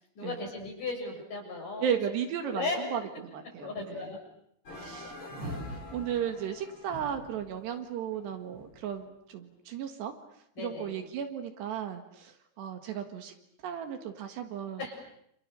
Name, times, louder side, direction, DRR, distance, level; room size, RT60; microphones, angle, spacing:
voice 1, 0.2-1.9 2.4-3.0 3.6-4.2 5.2-5.6 10.6-10.9 14.8-14.9, left 3 dB, 45° left, 1 dB, 8.3 m, -36 dB
voice 2, 1.8-4.1 4.7-10.2 10.6-13.3 13.6-14.8, right 8 dB, 70° right, 6 dB, 3.7 m, -35 dB
sound 1, 4.7-8.9, left 1 dB, 30° left, 5.5 m, -43 dB
29.0 x 28.0 x 6.9 m, 0.74 s
omnidirectional pair, 5.4 m